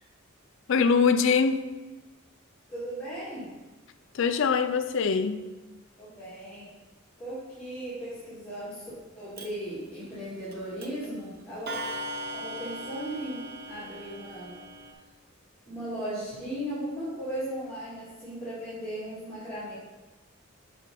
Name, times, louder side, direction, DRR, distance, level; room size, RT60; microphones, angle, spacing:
voice 1, 0.7-1.6 4.1-5.4, left 5 dB, 60° left, 10 dB, 0.4 m, -23 dB
voice 2, 2.7-3.5 6.0-6.7 7.2-11.7 12.3-14.5 15.7-19.7, right 1 dB, 10° left, -13 dB, 2.2 m, -37 dB
Clock, 9.4-9.5 10.5-10.6 10.8-11.1 11.7-14.9, right 1 dB, 45° right, 0.7 m, -38 dB
6.7 x 4.3 x 5.3 m, 1.2 s
head